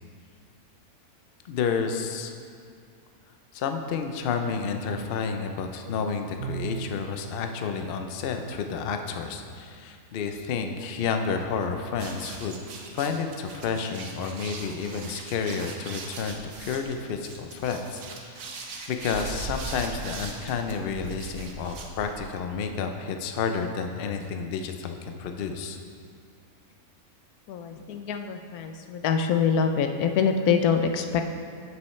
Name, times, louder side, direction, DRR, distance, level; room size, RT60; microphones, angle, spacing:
voice 1, 1.4-2.3 3.5-12.6 12.9-18.5 18.9-25.8, left 5 dB, 60° left, 5 dB, 0.6 m, -30 dB
Bowed string instrument, 6.4-7.3, right 9 dB, 65° right, 0.5 m, -35 dB
sound 1, 12.0-22.4, right 3 dB, 85° right, 1.3 m, -40 dB
voice 2, 27.5-31.2, left 6 dB, 85° left, 6 dB, 1.1 m, -25 dB
8.6 x 7.7 x 3.1 m, 2.3 s
omnidirectional pair, 1.5 m